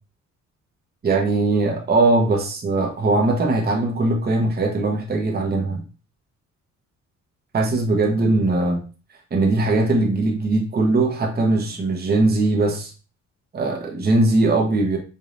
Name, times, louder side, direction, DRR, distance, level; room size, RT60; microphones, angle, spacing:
voice 1, 1.0-5.8 7.5-8.8 9.3-12.9 13.5-15.0, right 2 dB, 30° right, 1 dB, 0.9 m, -20 dB
5.1 x 2.7 x 2.5 m, 0.35 s
cardioid pair, 90°, 30 cm